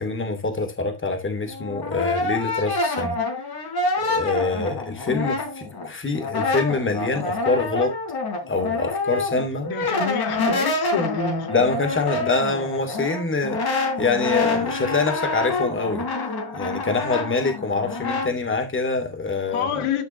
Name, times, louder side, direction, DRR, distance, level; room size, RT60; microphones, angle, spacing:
voice 1, 0.0-3.2 4.0-7.9 8.5-9.7 11.5-16.0 16.5-19.8, left 3 dB, 25° left, 2.9 m, -25 dB
Brass instrument, 1.4-5.9 6.1-18.3, left 2 dB, 50° left, 4.4 m, -27 dB
voice 2, 9.7-11.5 19.5-20.0, left 6 dB, 90° left, 2.4 m, -26 dB
12.5 x 6.0 x 2.8 m
cardioid pair, 130°, 49 cm